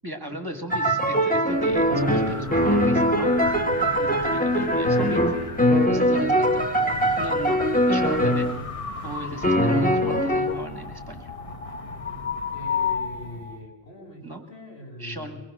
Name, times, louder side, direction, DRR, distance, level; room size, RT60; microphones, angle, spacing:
voice 1, 0.0-3.3 4.0-5.3 5.8-6.6 7.2-8.5 9.0-11.3 14.2-14.4 15.0-15.4, right 1 dB, 20° right, 5 dB, 1.9 m, -36 dB
sound 1, 0.7-8.6 9.4-10.5, equal, 10° left, 1.4 m, -22 dB
sound 2, 1.5-13.6, left 4 dB, 35° left, 1.2 m, -34 dB
voice 2, 5.5-6.3 12.5-15.4, left 1 dB, 90° left, 1 dB, 4.7 m, -41 dB
23.5 x 20.5 x 6.2 m, 1.1 s
omnidirectional pair, 1.0 m